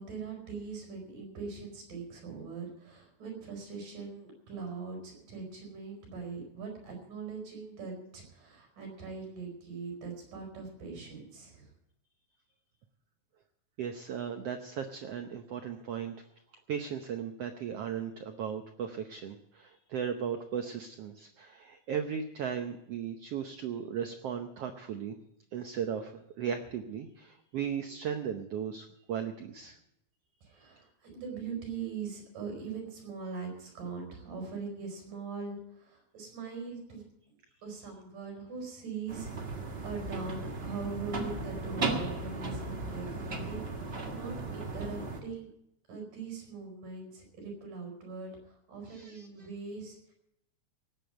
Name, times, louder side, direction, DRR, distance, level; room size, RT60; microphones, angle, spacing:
voice 1, 0.0-11.7 30.4-37.0 37.6-45.5 45.9-50.0, right 4 dB, 65° right, 2 dB, 6.0 m, -41 dB
voice 2, 13.8-16.1 16.7-25.2 25.5-26.1 26.4-29.8 48.9-49.3, right 8 dB, 85° right, 6 dB, 1.3 m, -36 dB
sound 1, 39.1-45.2, right 3 dB, 50° right, 0.7 m, -36 dB
18.0 x 8.4 x 7.7 m, 0.80 s
omnidirectional pair, 4.0 m